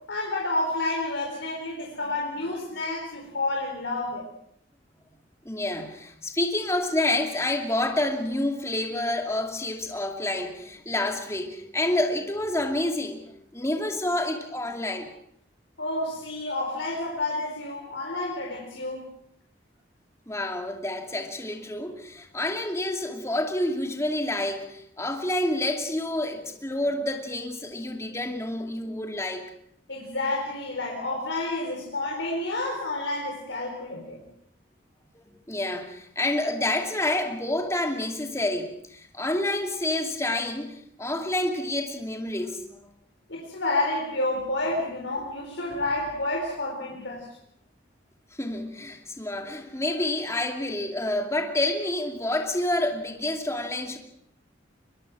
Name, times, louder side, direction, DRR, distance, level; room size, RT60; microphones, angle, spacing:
voice 1, 0.1-4.2 15.8-19.1 29.9-34.2 43.3-47.3, left 2 dB, 85° left, -1 dB, 4.5 m, -29 dB
voice 2, 5.4-13.2 13.5-15.1 20.3-29.4 35.5-42.7 48.4-54.0, left 1 dB, 15° left, 3 dB, 2.5 m, -28 dB
22.5 x 22.5 x 6.2 m, 0.72 s
head